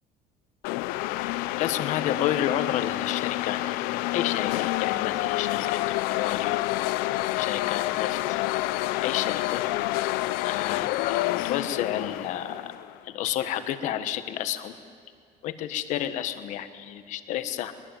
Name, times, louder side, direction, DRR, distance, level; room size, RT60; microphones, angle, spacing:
sound 1, 0.6-12.9, left 17 dB, 75° left, 0.7 m, -28 dB
voice 1, 1.6-3.8 4.1-5.8 6.1-6.6 7.4-8.4 9.0-9.6 10.4-12.7 13.0-14.7 15.4-17.7, left 11 dB, 50° left, 11 dB, 1.4 m, -30 dB
22.5 x 22.0 x 9.1 m, 2.3 s
cardioid pair, 175°, 16 cm